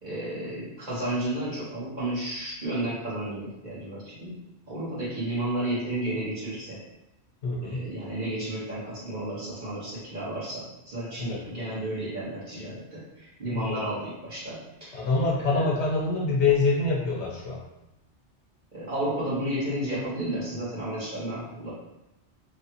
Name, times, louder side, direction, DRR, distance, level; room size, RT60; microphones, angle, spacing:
voice 1, 0.0-4.4 4.7-6.8 7.6-15.1 15.4-15.7 18.7-21.7, right 1 dB, 40° right, -10 dB, 1.4 m, -32 dB
voice 2, 7.4-7.8 11.2-11.4 13.5-13.8 14.9-17.6, left 3 dB, 75° left, -3 dB, 1.1 m, -25 dB
3.1 x 2.4 x 2.9 m, 0.92 s
omnidirectional pair, 1.2 m